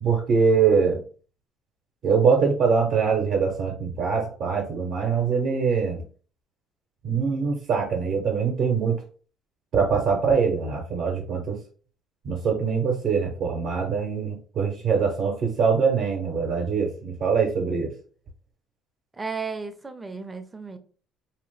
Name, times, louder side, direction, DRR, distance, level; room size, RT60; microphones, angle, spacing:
voice 1, 0.0-1.0 2.0-6.0 7.0-9.0 9.7-11.6 12.2-17.9, right 5 dB, 60° right, 0.7 m, -23 dB
voice 2, 19.1-20.8, right 5 dB, 20° right, 0.4 m, -34 dB
2.8 x 2.1 x 3.1 m
cardioid pair, 100°, 0 cm